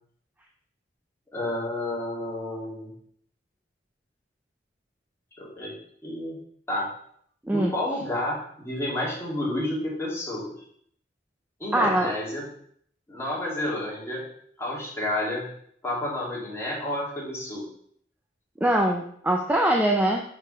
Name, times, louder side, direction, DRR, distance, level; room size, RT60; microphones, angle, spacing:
voice 1, 1.3-2.9 5.4-5.7 6.0-6.4 6.7-6.9 7.5-10.5 11.6-12.4 13.1-14.2 14.6-15.5 15.8-17.6, left 1 dB, 15° left, -5 dB, 2.7 m, -30 dB
voice 2, 11.7-12.1 18.6-20.2, right 1 dB, 10° right, 1 dB, 0.6 m, -22 dB
5.7 x 5.0 x 5.6 m, 0.64 s
head